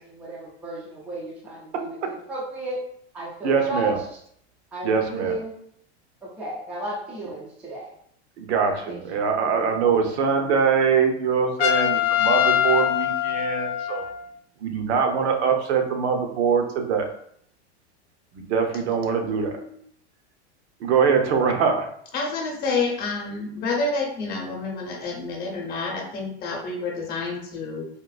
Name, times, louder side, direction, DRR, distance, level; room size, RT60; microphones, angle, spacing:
voice 1, 0.1-2.8 3.1-4.0 4.7-5.5 6.2-7.9 8.6-9.0, right 2 dB, 5° right, -4 dB, 0.3 m, -33 dB
voice 2, 1.7-2.1 3.4-4.0 4.8-5.3 8.4-14.0 14.6-17.1 18.3-19.6 20.8-21.9, right 6 dB, 70° right, 4 dB, 0.7 m, -23 dB
Trumpet, 11.6-14.3, left 12 dB, 55° left, 0.5 m, -23 dB
voice 3, 19.3-19.7 22.1-27.9, left 3 dB, 25° left, 0 dB, 0.8 m, -29 dB
3.7 x 2.5 x 2.3 m, 0.67 s
supercardioid pair, 140°, 34 cm